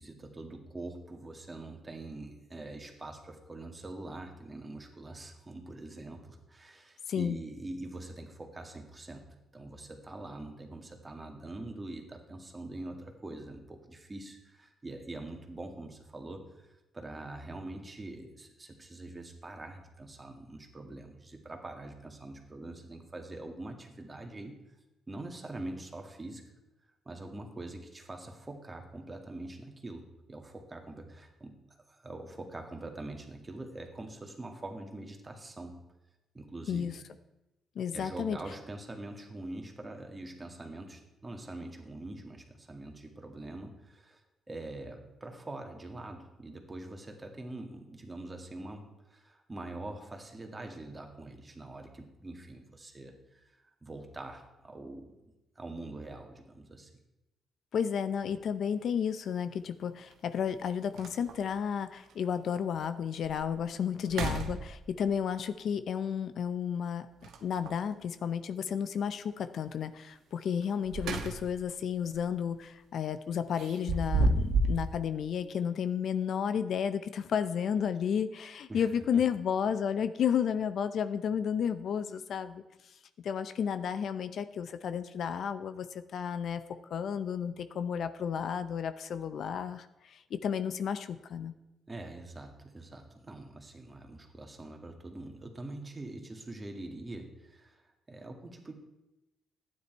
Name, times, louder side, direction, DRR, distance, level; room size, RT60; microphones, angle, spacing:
voice 1, 0.0-9.3 9.5-24.8 25.1-26.4 27.1-31.6 31.9-35.8 36.3-37.0 37.9-55.1 55.6-56.9 78.7-78.9 79.1-79.3 91.9-98.7, right 2 dB, 20° right, 3 dB, 2.0 m, -44 dB
voice 2, 7.1-7.4 36.7-37.0 37.8-38.4 57.7-67.1 67.4-82.9 83.2-86.6 86.9-91.5, left 7 dB, 65° left, 12 dB, 0.6 m, -32 dB
sound 1, 58.2-58.4 60.1-60.2 60.6-60.7 61.0-61.5 62.1-62.2 62.7-62.8 63.2-63.6 64.0-65.1 67.2-67.9 70.6-71.7 72.0-72.3 73.6-74.9, right 2 dB, 75° right, 1.2 m, -31 dB
12.0 x 9.7 x 4.6 m, 0.97 s
cardioid pair, 90°, 0 cm